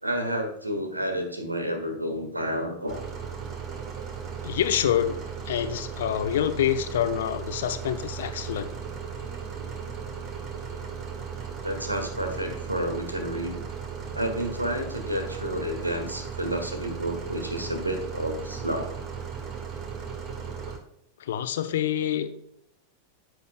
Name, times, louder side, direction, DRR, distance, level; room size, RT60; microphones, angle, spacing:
voice 1, 0.0-3.0 11.6-13.6 14.1-19.0, equal, 85° right, 5 dB, 1.5 m, -30 dB
sound 1, 2.9-20.8, right 6 dB, 30° right, 1.6 m, -36 dB
voice 2, 4.4-8.7 21.2-22.3, left 10 dB, 60° left, 11 dB, 0.7 m, -27 dB
10.5 x 8.0 x 2.2 m, 0.75 s
figure-of-eight pair, 90°, 0 cm